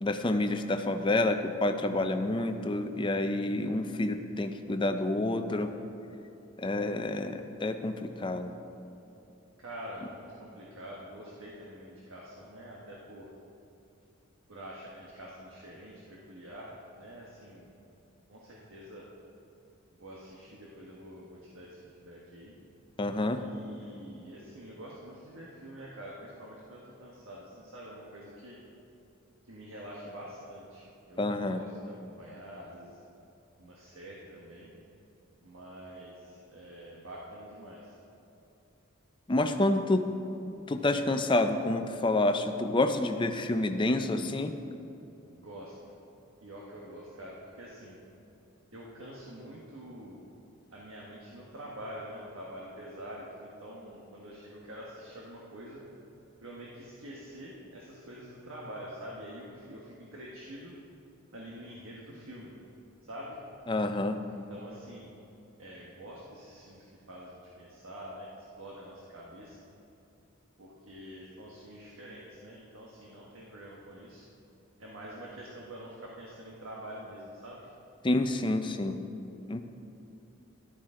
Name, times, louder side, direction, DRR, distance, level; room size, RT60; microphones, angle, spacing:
voice 1, 0.0-5.7 6.6-8.5 23.0-23.4 31.2-31.6 39.3-40.0 40.7-44.5 63.7-64.2 78.0-79.0 79.5-79.6, left 2 dB, 25° left, 7 dB, 0.5 m, -28 dB
voice 2, 9.6-13.3 14.5-17.7 18.3-19.1 19.9-22.6 23.4-28.6 29.4-33.0 33.6-34.7 35.4-38.0 45.3-45.9 46.4-48.0 48.7-50.2 50.7-55.8 56.4-60.7 61.3-62.5 63.0-63.4 64.3-65.1 65.6-68.3 68.6-69.6 70.6-74.3 74.8-77.7, equal, 75° right, -4 dB, 1.3 m, -46 dB
13.0 x 11.5 x 3.8 m, 2.9 s
head